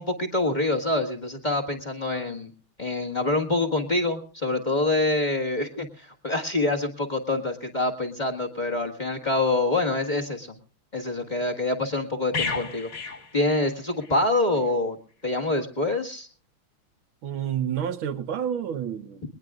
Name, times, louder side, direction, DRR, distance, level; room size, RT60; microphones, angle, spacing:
voice 1, 0.0-2.5 2.8-10.6 10.9-12.9 13.3-15.0 15.2-16.3, left 2 dB, 20° left, 1.7 m, -26 dB
sound 1, 12.3-14.2 14.5-14.7, left 4 dB, 40° left, 2.1 m, -33 dB
voice 2, 17.2-19.2, right 9 dB, 70° right, 1.7 m, -29 dB
21.5 x 19.5 x 2.4 m
omnidirectional pair, 2.3 m